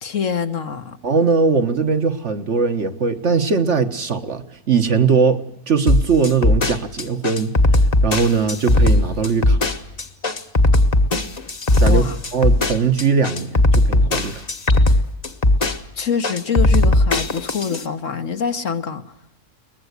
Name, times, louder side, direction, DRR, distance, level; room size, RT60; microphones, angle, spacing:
voice 1, 0.0-1.0 11.8-12.2 15.9-19.0, left 7 dB, 60° left, 1.5 m, -25 dB
voice 2, 1.0-7.5 8.0-9.6 11.8-12.0 12.3-14.4, right 5 dB, 50° right, 1.5 m, -20 dB
sound 1, 5.9-17.8, left 1 dB, 30° left, 1.3 m, -17 dB
23.0 x 20.0 x 8.2 m
omnidirectional pair, 1.6 m